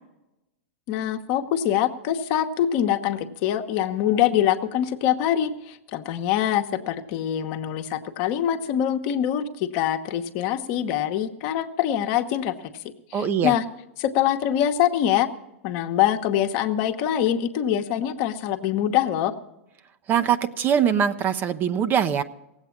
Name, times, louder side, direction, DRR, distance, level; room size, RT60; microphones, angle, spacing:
voice 1, 0.9-12.5 13.1-13.6 14.0-15.3 15.6-19.3, left 10 dB, 45° left, 7 dB, 1.1 m, -24 dB
voice 2, 13.1-13.5 20.1-22.2, right 8 dB, 30° right, 11 dB, 0.7 m, -22 dB
17.5 x 8.1 x 7.2 m, 0.94 s
hypercardioid pair, 110°, 7 cm